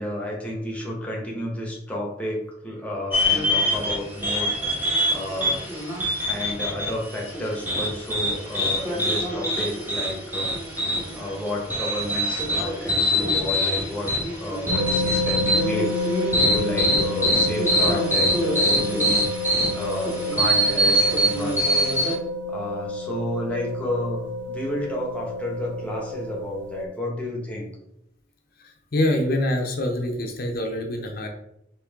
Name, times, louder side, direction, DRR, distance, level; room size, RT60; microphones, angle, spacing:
voice 1, 0.0-5.7 6.2-14.1 14.4-19.4 19.7-22.1 22.5-27.7, left 1 dB, 5° left, -2 dB, 1.1 m, -32 dB
sound 1, 3.1-22.1, equal, 10° right, 1.2 m, -24 dB
sound 2, 14.7-26.9, left 2 dB, 80° right, 0.8 m, -29 dB
voice 2, 28.9-31.3, left 1 dB, 55° left, 3 dB, 0.8 m, -25 dB
4.6 x 3.0 x 3.6 m, 0.79 s
head